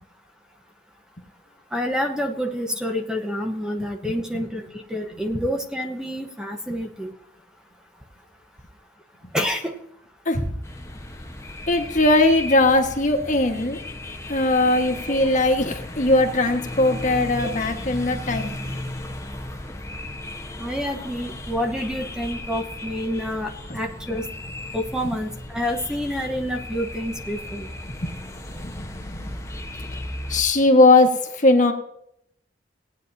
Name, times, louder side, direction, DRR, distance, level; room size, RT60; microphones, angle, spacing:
voice 1, 1.7-7.1 9.3-9.7 15.1-15.2 17.4-17.5 20.6-24.2 24.7-27.7, equal, 5° right, 3 dB, 1.0 m, -28 dB
sound 1, 10.6-30.4, left 1 dB, 15° left, 1.0 m, -35 dB
voice 2, 11.7-13.8 14.3-18.9 23.7-23.8 25.0-25.2 27.9-28.1 28.5-29.2 30.3-31.7, left 2 dB, 45° left, 4 dB, 1.5 m, -20 dB
18.0 x 9.6 x 2.7 m, 0.72 s
head